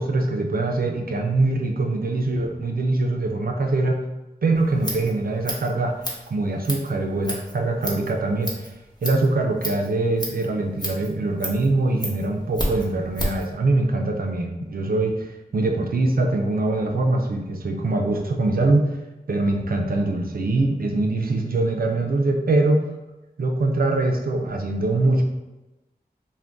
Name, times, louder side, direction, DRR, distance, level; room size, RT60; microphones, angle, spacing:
voice 1, 0.0-4.0 4.4-6.0 6.3-8.7 9.0-15.3 15.5-18.9 19.3-22.8 23.4-25.2, right 2 dB, 65° right, 2 dB, 0.4 m, -23 dB
Scissors, 4.6-13.5, equal, 25° left, 0.7 m, -33 dB
2.5 x 2.2 x 3.4 m, 1.0 s
wide cardioid pair, 60°, 16 cm